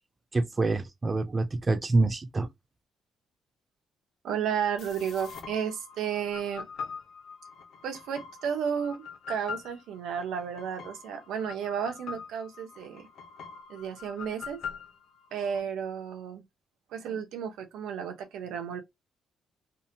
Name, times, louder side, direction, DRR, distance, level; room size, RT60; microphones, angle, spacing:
voice 1, 0.3-2.5, right 3 dB, 25° right, 0.3 m, -26 dB
voice 2, 4.2-6.7 7.8-13.1 13.7-14.6 15.3-16.4 16.9-18.8, right 7 dB, 85° right, 0.6 m, -33 dB
sound 1, 4.8-15.6, left 6 dB, 70° left, 0.6 m, -43 dB
2.7 x 2.1 x 2.6 m
cardioid pair, 90°, 0 cm